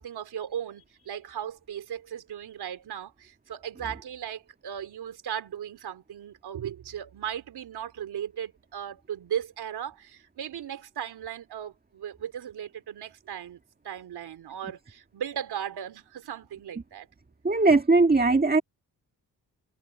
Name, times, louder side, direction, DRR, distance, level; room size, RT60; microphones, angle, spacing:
voice 1, 0.0-13.6 13.8-17.1, right 9 dB, 80° right, 3.3 m, -37 dB
voice 2, 17.4-18.6, right 3 dB, 25° right, 1.8 m, -20 dB
cardioid pair, 60°, 38 cm